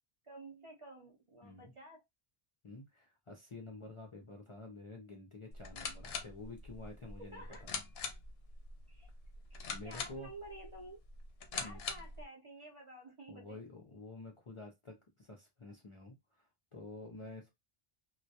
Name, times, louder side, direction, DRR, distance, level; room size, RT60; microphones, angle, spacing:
voice 1, 0.2-2.0 7.2-7.7 8.9-9.1 9.5-11.0 11.5-13.6, right 1 dB, 40° right, 0.5 m, -51 dB
voice 2, 1.4-1.7 2.6-7.7 9.7-10.3 11.6-11.8 13.3-17.5, left 2 dB, 45° left, 0.4 m, -50 dB
sound 1, 5.5-12.2, left 5 dB, 75° left, 0.8 m, -44 dB
2.2 x 2.1 x 2.7 m
omnidirectional pair, 1.0 m